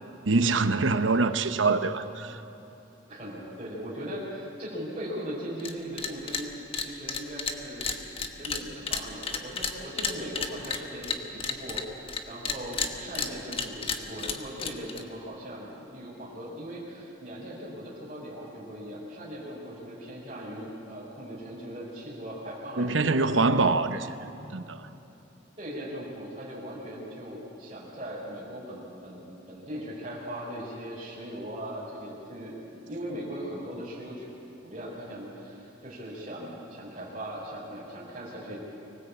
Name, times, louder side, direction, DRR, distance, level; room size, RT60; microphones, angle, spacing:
voice 1, 0.3-2.4 22.8-24.1 24.5-24.9, right 3 dB, 75° right, 10 dB, 1.0 m, -24 dB
voice 2, 3.1-7.9 8.4-23.8 25.6-34.3 34.6-38.6, equal, 30° right, -8 dB, 4.7 m, -39 dB
sound 1, 5.6-5.7 6.0-6.4 6.7-12.2 12.5-15.0, left 5 dB, 30° left, 1.2 m, -31 dB
24.5 x 18.0 x 8.4 m, 2.9 s
head